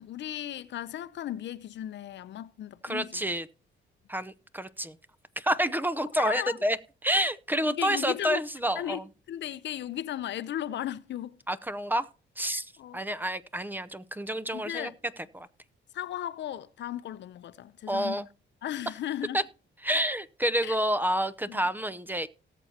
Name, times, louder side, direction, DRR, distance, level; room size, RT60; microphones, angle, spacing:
voice 1, 0.0-3.2 6.2-6.6 7.6-8.4 8.8-9.0 9.3-11.4 12.5-13.0 14.5-15.0 15.9-18.2 18.6-19.4 20.6-20.8 21.5-21.6, left 11 dB, 65° left, 0.6 m, -36 dB
voice 2, 2.8-3.5 4.1-5.0 5.4-6.8 7.0-9.0 11.5-12.1 12.4-12.7 12.9-14.9 15.3-15.5 17.9-18.3 19.3-19.4 19.8-22.3, right 1 dB, 10° right, 0.6 m, -28 dB
18.5 x 7.1 x 2.8 m
cardioid pair, 90°, 20 cm